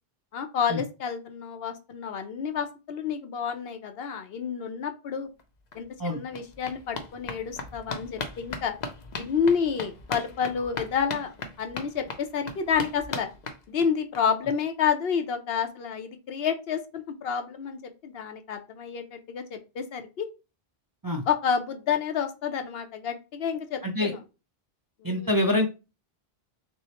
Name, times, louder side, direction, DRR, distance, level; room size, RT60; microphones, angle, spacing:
voice 1, 0.3-5.3 5.7-8.7 9.2-13.3 13.7-20.3 21.3-24.2 25.0-25.3, left 7 dB, 75° left, 7 dB, 0.9 m, -29 dB
sound 1, 5.4-5.5 5.7-14.2 14.5-14.6 14.9-15.0 15.2-15.3, left 3 dB, 50° left, 0.7 m, -38 dB
voice 2, 25.0-25.7, left 1 dB, 30° right, 1 dB, 0.5 m, -25 dB
6.2 x 2.1 x 2.9 m, 0.30 s
omnidirectional pair, 1.0 m